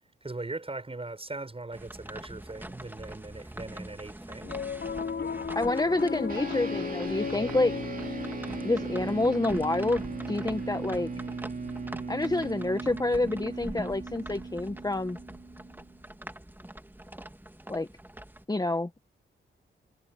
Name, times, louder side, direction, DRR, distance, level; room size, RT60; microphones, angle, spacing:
voice 1, 0.2-4.6, right 2 dB, 30° right, 7.8 m, -40 dB
sound 1, 1.7-18.4, right 1 dB, 10° right, 2.4 m, -44 dB
Piano, 4.4-14.9, left 6 dB, 65° left, 5.0 m, -38 dB
voice 2, 5.5-7.8 8.6-11.1 12.1-15.2 17.7-17.9 18.5-18.9, left 2 dB, 20° left, 1.3 m, -28 dB
sound 2, 6.3-15.9, right 4 dB, 45° right, 3.0 m, -38 dB
cardioid pair, 65°, 20 cm